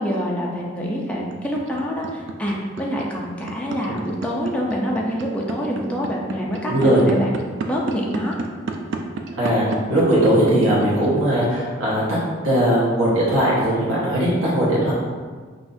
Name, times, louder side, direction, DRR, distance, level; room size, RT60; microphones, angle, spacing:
voice 1, 0.0-8.4, equal, 5° left, -3 dB, 0.5 m, -26 dB
sound 1, 1.3-11.4, right 4 dB, 65° right, 0.4 m, -30 dB
voice 2, 6.6-7.0 9.4-9.6 9.9-12.0 12.4-14.9, right 1 dB, 80° right, -8 dB, 1.1 m, -19 dB
5.6 x 2.5 x 2.6 m, 1.5 s
head